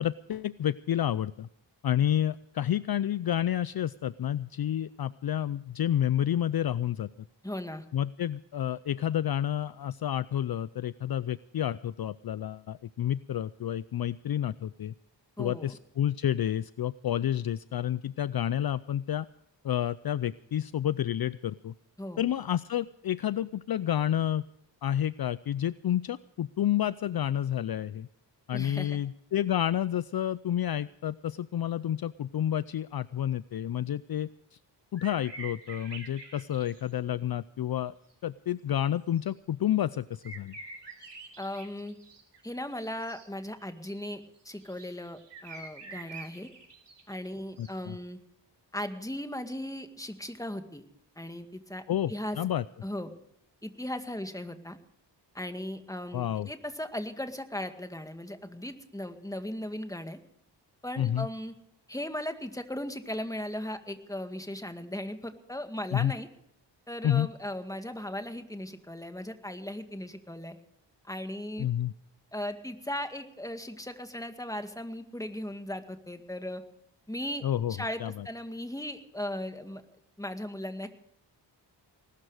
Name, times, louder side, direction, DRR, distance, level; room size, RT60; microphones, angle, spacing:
voice 1, 0.0-1.5 1.8-7.1 7.9-14.9 15.4-19.3 19.6-21.7 22.2-24.4 24.8-28.1 28.5-34.3 34.9-37.9 38.2-40.6 47.6-48.0 51.9-52.6 56.1-56.5 61.0-61.3 65.9-66.1 67.0-67.3 71.6-71.9 77.4-78.3, left 11 dB, 55° left, 17 dB, 0.5 m, -30 dB
voice 2, 7.4-7.8 15.4-15.8 22.0-22.3 28.5-29.0 41.4-42.0 42.4-46.5 47.1-48.2 48.7-50.8 51.2-51.8 52.1-52.4 52.8-53.1 53.6-54.8 55.3-60.2 60.8-61.5 61.9-66.3 66.9-70.6 71.0-71.7 72.3-76.6 77.1-77.4 77.7-79.8 80.2-80.9, left 1 dB, 10° left, 7 dB, 2.0 m, -37 dB
sound 1, 35.0-36.9 39.2-39.3 40.2-47.3 47.6-47.7, right 4 dB, 65° right, 3.7 m, -46 dB
20.0 x 12.5 x 5.0 m, 0.73 s
cardioid pair, 65°, 44 cm